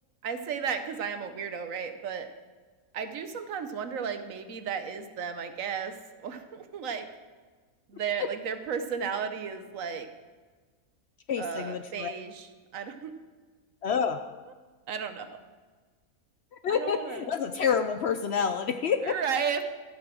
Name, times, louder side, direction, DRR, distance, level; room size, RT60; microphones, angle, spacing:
voice 1, 0.2-2.3 2.9-7.1 7.9-10.1 11.4-13.1 14.9-15.3 16.7-17.3 19.0-19.6, right 6 dB, 70° right, 9 dB, 1.3 m, -34 dB
voice 2, 11.3-12.1 13.8-14.2 16.5-19.2, left 7 dB, 60° left, 9 dB, 0.7 m, -28 dB
13.5 x 8.5 x 6.2 m, 1.4 s
omnidirectional pair, 1.5 m